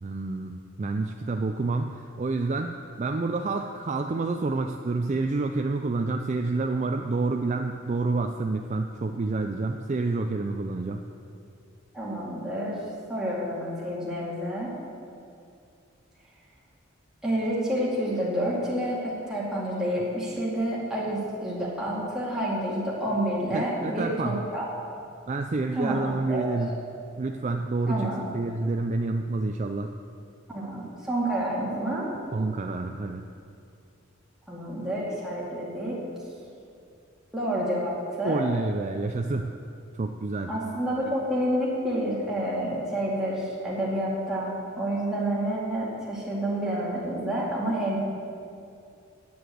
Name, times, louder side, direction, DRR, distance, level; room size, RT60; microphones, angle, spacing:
voice 1, 0.0-2.7 3.0-11.0 23.5-24.4 25.3-26.7 27.2-29.9 32.3-33.2 38.2-39.5 39.9-40.5, right 3 dB, 35° right, 5 dB, 0.4 m, -28 dB
voice 2, 11.9-12.8 13.1-14.7 17.2-24.9 25.8-26.5 27.9-28.3 30.5-32.1 34.5-36.0 37.3-38.4 40.5-48.0, right 1 dB, 5° right, -7 dB, 2.4 m, -29 dB
9.5 x 7.9 x 7.9 m, 2.5 s
head